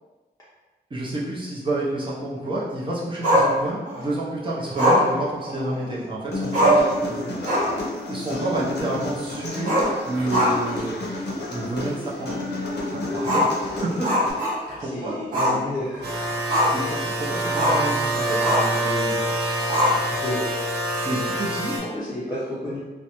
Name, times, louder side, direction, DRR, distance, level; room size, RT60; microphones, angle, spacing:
voice 1, 0.9-6.8 8.1-9.7 10.0-11.1 11.5-12.3 12.9-13.5 13.8-14.4 14.8-15.7 16.6-19.2 20.9-21.8, right 1 dB, 30° right, -7 dB, 0.5 m, -29 dB
Growling, 3.2-4.0 4.8-6.0 6.3-6.4 6.5-7.0 7.3-7.8 8.1-8.2 9.6-10.8 11.1-11.2 11.8-11.9 13.2-14.8 15.3-15.6 15.9-16.9 17.5-17.9 18.4-18.8 19.7-20.3, equal, 50° right, 1.0 m, -22 dB
Human voice, 6.3-14.3, left 2 dB, 75° left, 0.5 m, -31 dB
voice 2, 7.1-7.4 13.7-13.9 14.8-16.1 20.2-20.5 21.9-22.8, left 1 dB, 20° left, -8 dB, 0.5 m, -32 dB
sound 1, 16.0-21.8, right 1 dB, 75° right, 0.6 m, -26 dB
2.4 x 2.1 x 2.9 m, 1.2 s
wide cardioid pair, 150°, 18 cm